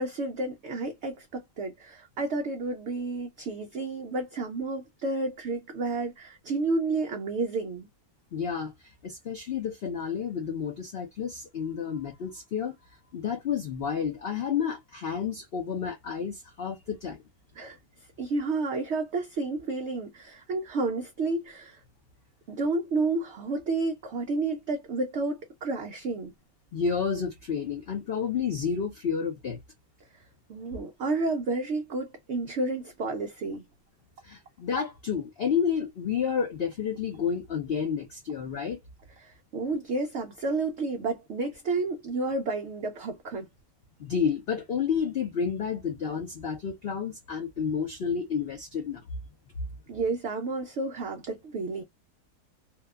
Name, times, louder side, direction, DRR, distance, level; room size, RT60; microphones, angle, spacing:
voice 1, 0.0-7.9 17.6-17.8 18.2-21.8 22.5-26.3 30.1-30.2 30.5-33.7 39.2-43.5 49.9-51.8, right 3 dB, 85° right, 0.6 m, -31 dB
voice 2, 8.3-12.8 13.1-17.2 26.7-29.6 34.2-38.8 44.0-49.0, left 7 dB, 80° left, 0.5 m, -30 dB
2.7 x 2.2 x 2.2 m
omnidirectional pair, 1.8 m